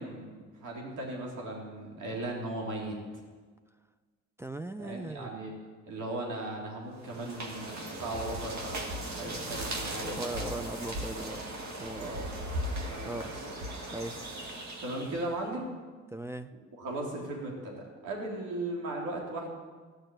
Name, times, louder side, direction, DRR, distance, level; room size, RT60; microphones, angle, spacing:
voice 1, 0.0-3.2 4.8-5.5 5.9-10.5 11.1-11.3 11.9-12.5 12.9-13.1 14.8-15.7 16.8-19.5, right 1 dB, 85° right, -1 dB, 3.5 m, -37 dB
voice 2, 4.4-5.4 10.0-11.4 11.8-12.1 13.0-13.4 13.9-14.2 16.1-16.5, right 1 dB, 10° right, 6 dB, 0.5 m, -39 dB
sound 1, 7.0-15.4, right 1 dB, 65° right, 2.0 m, -38 dB
15.0 x 6.5 x 9.1 m, 1.5 s
cardioid pair, 90°, 30 cm